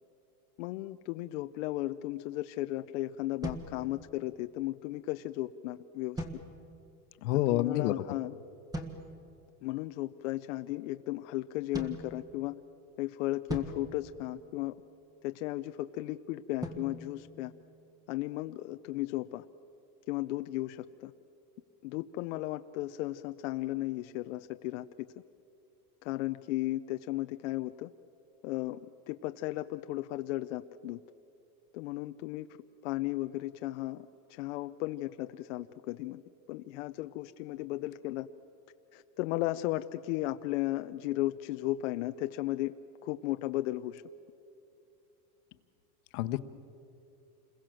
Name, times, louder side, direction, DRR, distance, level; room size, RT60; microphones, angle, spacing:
voice 1, 0.6-6.2 7.3-8.4 9.6-12.6 13.0-14.8 15.2-17.5 18.1-19.5 20.1-21.1 21.8-24.9 26.0-27.9 28.4-28.8 29.1-31.0 31.7-32.5 32.8-36.2 36.5-38.3 38.9-44.0, left 16 dB, 50° left, 9 dB, 0.5 m, -35 dB
sound 1, 3.4-4.5 6.2-7.0 8.7-9.4 11.7-12.8 13.5-15.0 16.6-18.1, right 1 dB, 10° right, 1.4 m, -42 dB
voice 2, 7.2-7.9 46.1-46.4, left 15 dB, 65° left, 13 dB, 1.1 m, -28 dB
28.5 x 21.5 x 7.6 m, 2.7 s
supercardioid pair, 165°, 48 cm